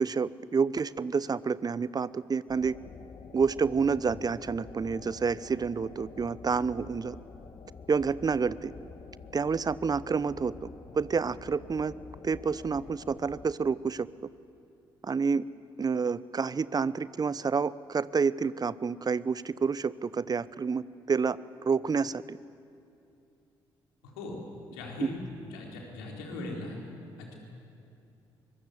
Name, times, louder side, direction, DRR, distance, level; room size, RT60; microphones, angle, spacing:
voice 1, 0.0-2.8 3.3-7.2 7.9-8.7 9.3-10.7 10.9-11.9 12.2-14.1 15.0-15.4 15.8-21.4 21.6-22.4 25.0-25.1, right 5 dB, 30° right, 19 dB, 0.8 m, -29 dB
sound 1, 2.5-13.5, left 5 dB, 45° left, 1.7 m, -48 dB
voice 2, 24.0-24.4 24.7-25.2 25.4-26.8 27.2-27.4, left 2 dB, 75° left, 0 dB, 4.1 m, -39 dB
24.5 x 22.5 x 8.0 m, 2.6 s
figure-of-eight pair, 40°, 12 cm